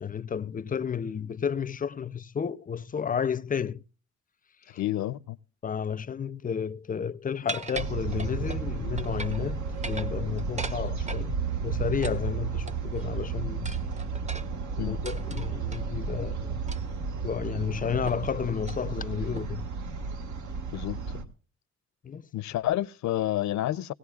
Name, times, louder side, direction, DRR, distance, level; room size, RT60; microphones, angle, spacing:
voice 1, 0.0-3.8 4.7-4.8 5.6-13.7 14.8-16.6 17.2-19.7 22.0-22.3, left 7 dB, 30° left, 0.5 m, -32 dB
voice 2, 4.7-5.4 14.8-15.0 20.7-21.2 22.3-23.9, left 14 dB, 70° left, 0.6 m, -29 dB
sound 1, 7.5-8.6 9.0-9.5 9.7-11.3 12.0-13.0 13.6-15.8 16.7-17.0 17.4-17.5 18.1-18.3 18.6-18.8 19.3-19.7, right 3 dB, 25° right, 0.8 m, -40 dB
sound 2, 7.7-21.2, right 5 dB, 70° right, 1.6 m, -33 dB
18.0 x 17.5 x 2.4 m
cardioid pair, 90°, 30 cm